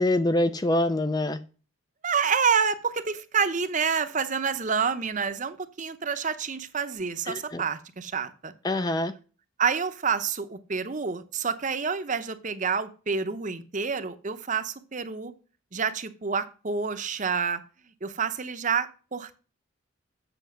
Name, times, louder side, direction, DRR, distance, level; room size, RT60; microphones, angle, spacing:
voice 1, 0.0-1.4 7.3-7.6 8.6-9.1, left 1 dB, 20° left, 12 dB, 0.4 m, -25 dB
voice 2, 2.0-8.5 9.6-15.3 15.7-17.6 18.0-19.4, right 6 dB, 35° right, 12 dB, 0.7 m, -28 dB
7.9 x 6.7 x 6.2 m, 0.37 s
head